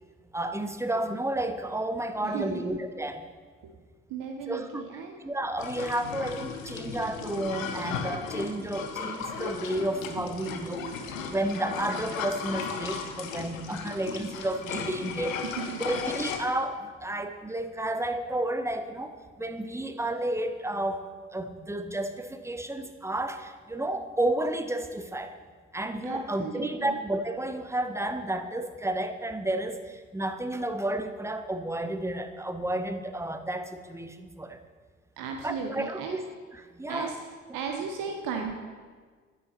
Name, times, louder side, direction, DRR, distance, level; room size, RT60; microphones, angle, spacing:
voice 1, 0.3-3.2 4.5-15.4 15.8-21.0 21.3-25.4 25.7-34.6 35.4-36.2 36.5-37.1, right 1 dB, 5° right, 9 dB, 0.7 m, -31 dB
voice 2, 2.2-2.6 4.1-5.2 15.6-15.8 26.0-27.0 35.2-36.2 36.9-37.1 37.5-38.6, right 6 dB, 60° right, 3 dB, 0.9 m, -35 dB
sound 1, 5.6-16.4, left 5 dB, 80° left, 0.7 m, -36 dB
9.3 x 9.1 x 2.9 m, 1.5 s
figure-of-eight pair, 45°, 39 cm